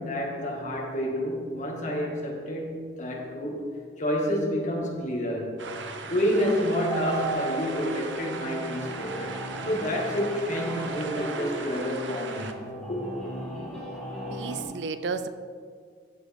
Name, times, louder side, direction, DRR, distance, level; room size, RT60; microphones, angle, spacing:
voice 1, 0.0-3.6 4.0-5.6 6.1-9.4 9.7-13.1, equal, 45° left, -2 dB, 2.1 m, -29 dB
sound 1, 5.6-12.5, right 4 dB, 85° right, 0.9 m, -38 dB
sound 2, 6.2-14.6, right 1 dB, 5° left, 1.8 m, -36 dB
voice 2, 14.3-15.3, right 5 dB, 70° right, 11 dB, 0.5 m, -32 dB
14.5 x 7.2 x 3.6 m, 2.1 s
head